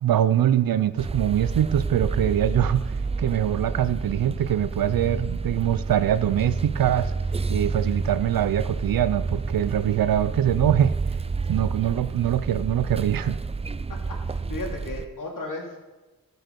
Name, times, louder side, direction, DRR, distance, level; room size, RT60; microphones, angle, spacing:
voice 1, 0.0-7.1 7.5-10.9 11.5-13.4, right 11 dB, 75° right, 0.6 m, -23 dB
sound 1, 1.0-15.0, right 4 dB, 20° right, 0.4 m, -29 dB
voice 2, 13.9-15.8, left 2 dB, 65° left, 2.7 m, -35 dB
12.5 x 6.6 x 5.3 m
supercardioid pair, 40°, 35 cm